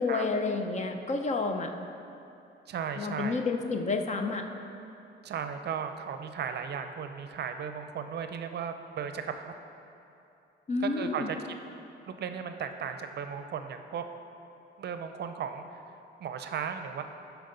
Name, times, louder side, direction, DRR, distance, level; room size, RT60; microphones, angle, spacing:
voice 1, 0.0-1.7 3.0-4.4 10.7-11.3, left 3 dB, 35° left, 5 dB, 0.6 m, -30 dB
voice 2, 2.7-3.4 5.2-9.5 10.8-11.4 12.1-14.1 14.8-15.8 16.2-17.0, right 7 dB, 55° right, 8 dB, 0.6 m, -36 dB
12.0 x 4.6 x 3.9 m, 2.8 s
cardioid pair, 90°, 20 cm